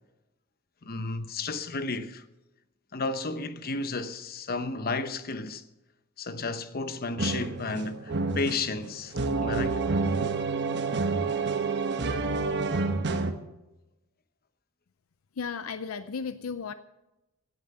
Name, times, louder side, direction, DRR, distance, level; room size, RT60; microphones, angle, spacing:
voice 1, 0.8-2.2 2.9-5.6 6.2-9.8, left 3 dB, 45° left, 0.9 m, -33 dB
sound 1, 7.2-13.3, right 3 dB, 55° right, 1.2 m, -28 dB
voice 2, 15.4-16.7, left 5 dB, 70° left, 0.6 m, -34 dB
17.0 x 9.0 x 6.7 m
head